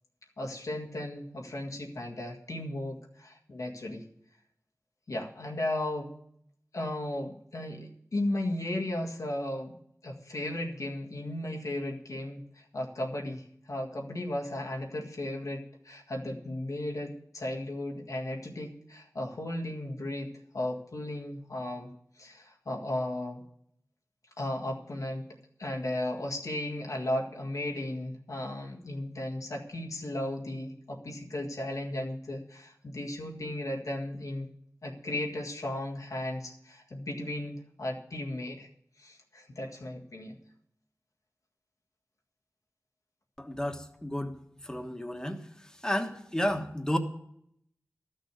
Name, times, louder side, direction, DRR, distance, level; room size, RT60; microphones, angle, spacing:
voice 1, 0.4-4.0 5.1-6.1 6.7-9.7 10.0-21.9 22.2-23.4 24.4-25.3 25.6-34.5 34.8-38.7 39.0-40.4, left 1 dB, 90° left, 0 dB, 1.7 m, -35 dB
voice 2, 43.4-44.3 44.7-45.4 45.8-47.0, left 1 dB, 10° left, 4 dB, 1.3 m, -31 dB
13.0 x 6.4 x 8.1 m, 0.71 s
wide cardioid pair, 50°, 5 cm